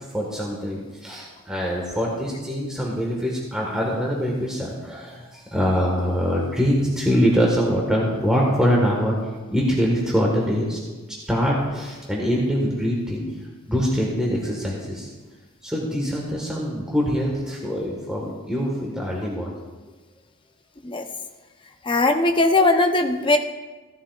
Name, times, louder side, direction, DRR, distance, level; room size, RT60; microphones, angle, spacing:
voice 1, 0.1-9.2 9.5-10.8 11.3-13.2 13.7-15.1 15.6-19.5, equal, 5° right, -3 dB, 1.4 m, -23 dB
voice 2, 21.9-23.4, left 2 dB, 20° left, 6 dB, 0.6 m, -19 dB
15.5 x 11.0 x 2.3 m, 1.3 s
head